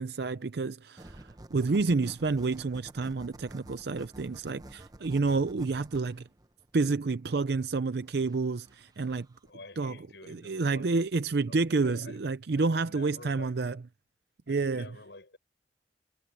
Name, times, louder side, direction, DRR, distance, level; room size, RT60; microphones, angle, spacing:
voice 1, 0.0-6.3 6.7-9.3 9.8-10.0 10.3-13.8 14.5-14.9, right 3 dB, 65° right, 0.5 m, -29 dB
sound 1, 1.0-9.5, right 1 dB, 20° right, 0.9 m, -51 dB
voice 2, 9.4-11.1 11.5-12.2 12.5-13.8 14.5-15.4, left 2 dB, 80° left, 5.9 m, -50 dB
head